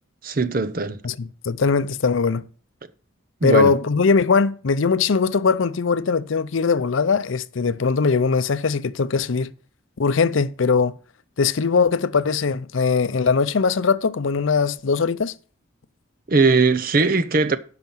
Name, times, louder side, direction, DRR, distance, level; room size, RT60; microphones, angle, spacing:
voice 1, 0.2-1.0 3.4-3.7 16.3-17.6, right 3 dB, 45° right, 0.7 m, -19 dB
voice 2, 1.0-2.4 3.4-9.5 10.0-10.9 11.4-15.3, left 5 dB, 80° left, 0.6 m, -20 dB
9.4 x 5.8 x 7.2 m
head